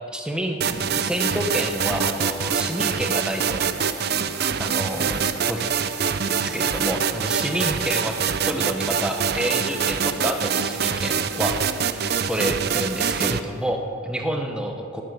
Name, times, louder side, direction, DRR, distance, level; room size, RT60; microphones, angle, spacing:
voice 1, 0.1-0.6 0.9-3.6 4.0-4.1 4.6-5.7 6.4-8.2 8.4-11.5 12.3-15.0, equal, 5° right, 3 dB, 1.0 m, -28 dB
sound 1, 0.6-13.7, left 2 dB, 60° left, 3.1 m, -44 dB
sound 2, 0.6-13.4, right 7 dB, 50° right, 0.5 m, -25 dB
11.5 x 11.0 x 6.1 m, 2.6 s
head